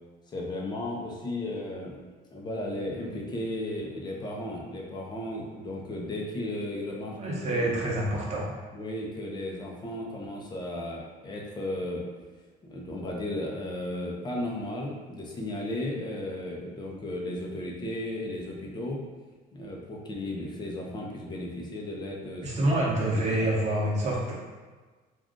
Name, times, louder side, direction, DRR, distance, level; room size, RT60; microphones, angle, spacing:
voice 1, 0.3-2.0 2.3-7.8 8.7-12.0 12.6-19.0 19.5-22.7 23.0-23.5, left 1 dB, 25° left, -2 dB, 0.6 m, -35 dB
voice 2, 7.2-8.6 22.4-24.3, right 1 dB, 40° right, -4 dB, 0.9 m, -27 dB
2.5 x 2.3 x 3.6 m, 1.4 s
cardioid pair, 110°, 17 cm